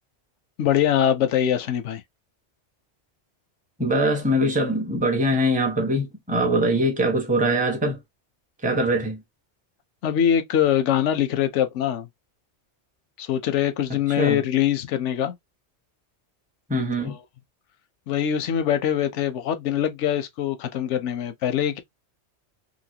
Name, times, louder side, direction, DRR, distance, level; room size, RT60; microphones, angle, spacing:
voice 1, 0.6-2.0 10.0-12.1 13.2-15.4 18.1-21.8, left 10 dB, 85° left, 0.9 m, -23 dB
voice 2, 3.8-8.0 8.6-9.2 14.2-14.4 16.7-17.2, right 1 dB, 10° right, 0.6 m, -22 dB
3.0 x 2.6 x 2.7 m
omnidirectional pair, 1.2 m